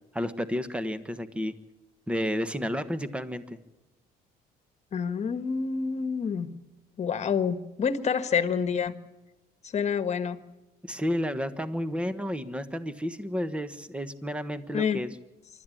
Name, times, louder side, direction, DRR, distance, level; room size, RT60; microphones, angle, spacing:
voice 1, 0.1-1.5 2.1-3.6 10.8-15.1, equal, 5° right, 12 dB, 1.3 m, -31 dB
voice 2, 4.9-6.5 7.0-8.9 9.6-10.4 14.7-15.0, left 6 dB, 40° left, 11 dB, 1.5 m, -28 dB
25.5 x 12.5 x 8.7 m, 1.1 s
cardioid pair, 110°, 17 cm